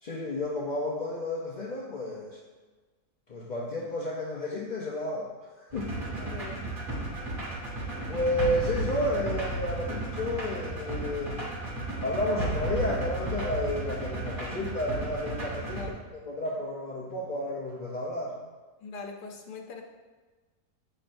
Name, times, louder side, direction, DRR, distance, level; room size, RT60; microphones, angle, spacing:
voice 1, 0.0-2.4 3.3-6.1 7.1-7.2 8.1-11.4 12.0-15.9 16.2-18.4, left 1 dB, 45° left, -4 dB, 0.6 m, -32 dB
sound 1, 5.7-15.9, right 2 dB, 30° right, 1.8 m, -34 dB
voice 2, 5.9-6.6 15.6-16.0 18.8-19.8, left 4 dB, 85° left, 1 dB, 1.5 m, -42 dB
8.6 x 5.8 x 2.6 m, 1.3 s
omnidirectional pair, 1.7 m